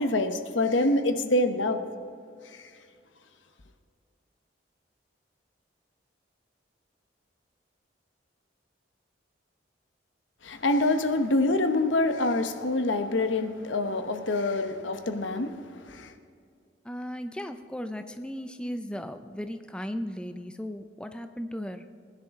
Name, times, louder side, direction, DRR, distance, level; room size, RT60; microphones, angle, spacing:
voice 1, 0.0-1.8 2.5-2.7 10.4-16.1, left 2 dB, 85° left, 8 dB, 1.0 m, -26 dB
voice 2, 16.8-21.8, equal, 5° left, 8 dB, 0.5 m, -36 dB
20.0 x 10.5 x 3.7 m, 2.3 s
head